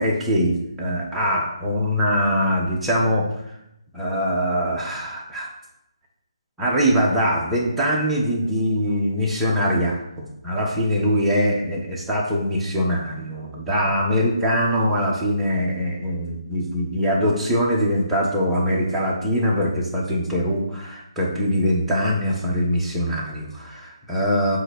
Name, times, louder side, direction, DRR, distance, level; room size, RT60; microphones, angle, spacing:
voice 1, 0.0-3.3 3.9-5.5 6.6-24.6, equal, 5° right, -4 dB, 1.3 m, -22 dB
7.8 x 3.1 x 6.0 m, 0.82 s
figure-of-eight pair, 150°, 3 cm